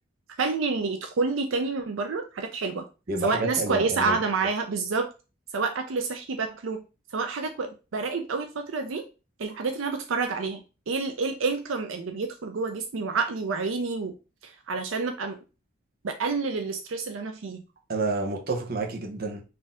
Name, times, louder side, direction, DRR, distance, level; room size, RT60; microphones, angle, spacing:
voice 1, 0.4-2.9 3.2-5.1 5.5-6.8 7.1-9.0 9.4-14.1 14.4-15.4 16.0-17.6, right 4 dB, 80° right, 0.5 m, -28 dB
voice 2, 3.1-4.2 17.9-19.4, right 3 dB, 50° right, 0.8 m, -29 dB
4.1 x 2.7 x 3.5 m
head